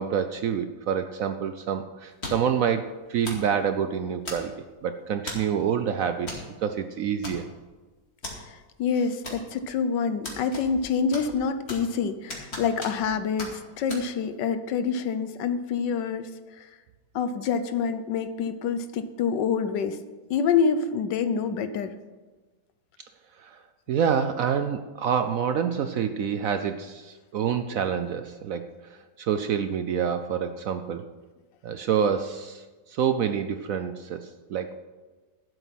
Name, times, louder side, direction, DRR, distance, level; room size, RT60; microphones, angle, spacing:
voice 1, 0.0-4.5 4.8-7.5 23.4-23.6 23.9-28.7 29.2-31.0 31.6-32.6 32.9-34.8, right 7 dB, 70° right, 9 dB, 0.8 m, -27 dB
sound 1, 2.2-2.6 3.2-3.5 4.3-4.7 5.3-5.5 6.3-6.5 6.7-6.8 7.2-7.7 8.2-8.4 9.2-9.7 10.2-10.9 11.1-12.0 12.3-13.1 13.4-13.5 13.9-14.0, left 2 dB, 35° left, 2.5 m, -37 dB
voice 2, 8.4-16.3 16.6-16.7 17.1-20.0 20.3-21.9, left 6 dB, 80° left, 11 dB, 1.5 m, -27 dB
12.5 x 8.0 x 5.8 m, 1.3 s
omnidirectional pair, 1.9 m